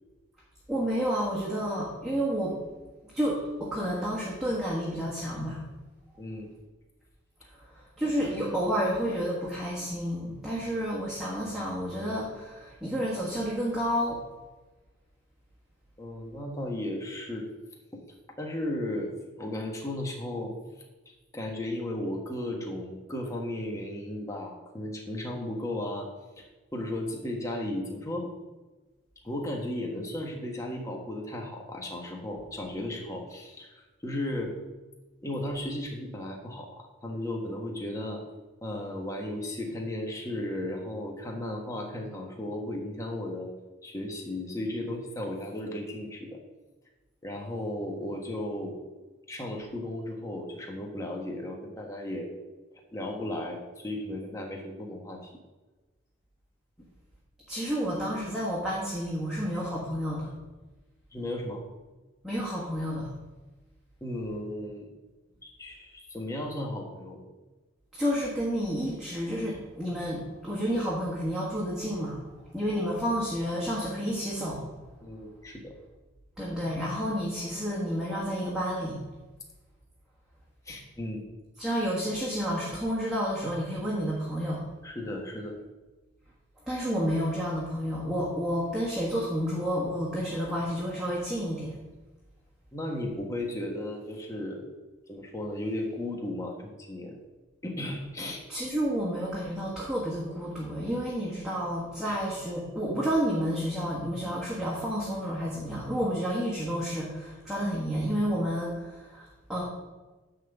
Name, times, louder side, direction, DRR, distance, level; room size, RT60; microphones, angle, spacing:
voice 1, 0.7-2.6 3.0-5.6 7.5-14.2 57.5-60.3 62.2-63.1 67.9-74.7 76.4-79.0 81.6-84.6 86.6-91.8 98.5-109.6, equal, 5° right, -7 dB, 1.5 m, -30 dB
voice 2, 6.2-6.5 8.0-8.1 10.7-10.8 16.0-17.5 18.4-20.5 21.3-26.1 26.7-28.3 29.2-34.5 35.2-38.2 38.6-43.5 43.8-46.4 47.2-48.8 49.3-52.3 52.9-55.3 61.1-61.6 64.0-64.9 65.4-67.2 75.0-75.7 80.7-81.2 84.8-85.6 92.7-94.7 95.1-97.2 97.6-98.4 102.1-102.2, left 1 dB, 15° left, 0 dB, 1.3 m, -35 dB
10.0 x 3.8 x 7.1 m, 1.2 s
head